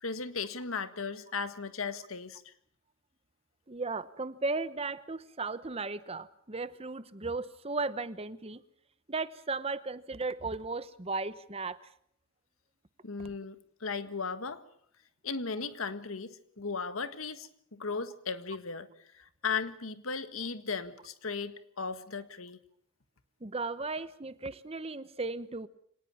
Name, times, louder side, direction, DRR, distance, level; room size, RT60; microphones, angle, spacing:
voice 1, 0.0-2.5 13.0-14.6 15.2-18.9 19.1-22.6, left 5 dB, 85° left, 12 dB, 1.6 m, -36 dB
voice 2, 3.7-8.6 9.1-11.9 23.4-25.7, right 3 dB, 30° right, 15 dB, 0.9 m, -36 dB
25.0 x 19.0 x 7.2 m, 0.66 s
head